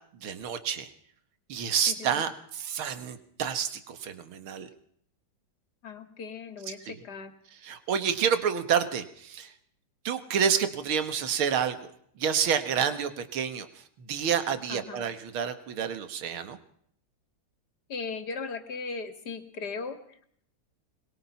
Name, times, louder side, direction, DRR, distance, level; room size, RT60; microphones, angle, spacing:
voice 1, 0.2-0.9 1.5-4.7 6.9-7.0 7.6-9.5 10.0-11.8 12.2-13.7 14.1-16.6, right 7 dB, 85° right, 10 dB, 2.3 m, -29 dB
voice 2, 1.9-2.2 5.8-7.3 14.7-15.0 17.9-20.3, left 4 dB, 50° left, 9 dB, 2.6 m, -38 dB
23.5 x 22.0 x 5.8 m, 0.64 s
omnidirectional pair, 2.2 m